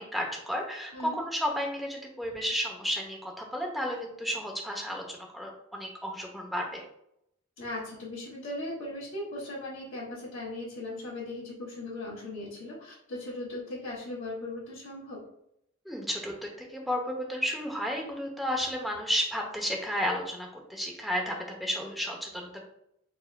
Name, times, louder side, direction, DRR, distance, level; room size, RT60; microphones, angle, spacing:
voice 1, 0.0-6.8 15.8-22.6, equal, ahead, 0 dB, 0.8 m, -32 dB
voice 2, 7.6-15.2, left 2 dB, 70° left, -8 dB, 1.6 m, -38 dB
4.3 x 3.8 x 2.2 m, 0.76 s
head